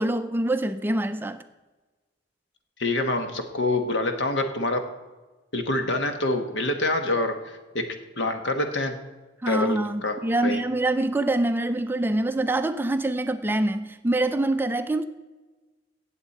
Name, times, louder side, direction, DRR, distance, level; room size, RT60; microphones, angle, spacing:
voice 1, 0.0-1.4 9.4-15.0, right 1 dB, 10° right, 0.4 m, -25 dB
voice 2, 2.8-4.8 5.5-7.3 7.7-7.8 8.2-8.9 9.5-10.2 10.4-10.6, left 2 dB, 70° left, 1.3 m, -26 dB
17.0 x 7.4 x 4.2 m
head